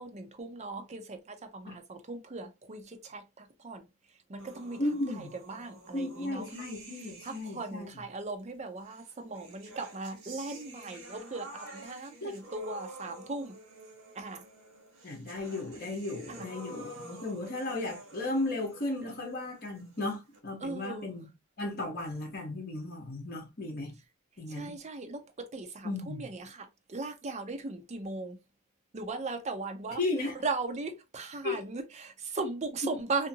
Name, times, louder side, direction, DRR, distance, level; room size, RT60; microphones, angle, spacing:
voice 1, 0.0-3.9 4.3-4.8 5.2-6.6 7.0-13.6 14.1-14.4 16.3-16.5 20.6-21.1 24.5-28.4 28.9-30.0 30.3-33.3, right 3 dB, 35° right, 0.5 m, -38 dB
sound 1, 4.4-7.8 8.8-20.4, right 2 dB, 75° right, 1.0 m, -50 dB
voice 2, 4.8-5.3 5.9-7.9 12.2-12.4 15.0-21.3 21.6-23.9 24.4-24.8 25.8-26.2 30.0-30.4 31.4-31.6 32.8-32.9, left 2 dB, 50° left, 1.0 m, -35 dB
2.6 x 2.5 x 2.6 m
head